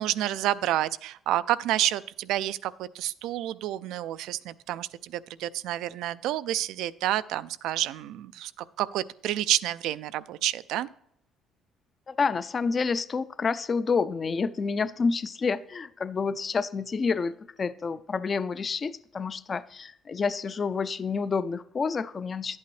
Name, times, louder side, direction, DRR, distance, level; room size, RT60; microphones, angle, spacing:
voice 1, 0.0-10.9, right 13 dB, 80° right, 0.4 m, -29 dB
voice 2, 12.1-22.6, left 5 dB, 30° left, 0.4 m, -29 dB
11.0 x 8.5 x 3.2 m
cardioid pair, 140°, 0 cm